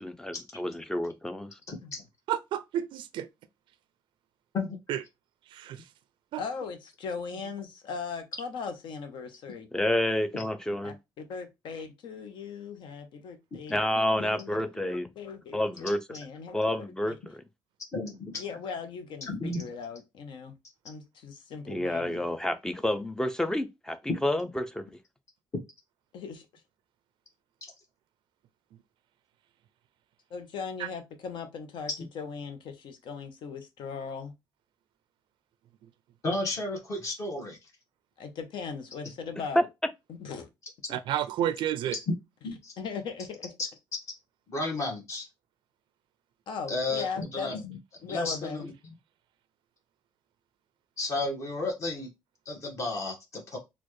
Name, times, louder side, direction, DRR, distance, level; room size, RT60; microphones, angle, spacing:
voice 1, 0.0-1.5 9.7-11.0 13.7-15.1 15.5-16.0 16.5-17.4 21.7-24.9 39.6-39.7, left 1 dB, 5° left, 0.4 m, -29 dB
voice 2, 1.7-2.0 4.5-4.8 10.3-10.4 17.9-18.4 19.3-19.7 27.6-27.7 32.0-32.1 36.2-37.6 42.4-42.7 44.5-45.3 46.7-48.7 51.0-52.1 52.4-53.6, left 2 dB, 40° left, 1.3 m, -33 dB
voice 3, 2.3-3.3 4.9-5.0 5.5-5.9 6.3-6.4 7.3-7.4 30.8-30.9 40.9-42.0, right 11 dB, 75° right, 0.3 m, -31 dB
voice 4, 6.4-9.7 10.8-16.7 17.1-17.2 18.4-20.6 20.8-22.2 26.1-26.5 30.3-34.3 38.2-39.7 40.2-40.5 42.8-43.5 46.5-47.5 48.0-48.6, left 5 dB, 70° left, 0.8 m, -39 dB
4.2 x 2.3 x 3.1 m
cardioid pair, 150°, 8 cm